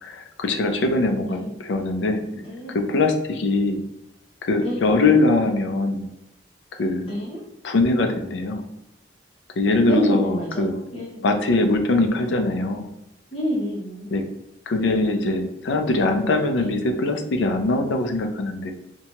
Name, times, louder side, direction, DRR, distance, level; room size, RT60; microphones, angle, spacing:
voice 1, 0.0-2.2 2.7-3.8 4.4-6.1 6.8-7.1 7.6-8.6 9.6-10.8 11.2-12.9 14.1-14.3 14.7-18.7, left 2 dB, 75° left, 5 dB, 0.4 m, -22 dB
voice 2, 1.2-1.5 2.3-2.8 4.6-4.9 7.0-7.4 9.8-11.2 13.3-14.1 16.5-16.7, equal, 30° left, -5 dB, 0.6 m, -27 dB
2.7 x 2.2 x 2.9 m, 0.87 s
head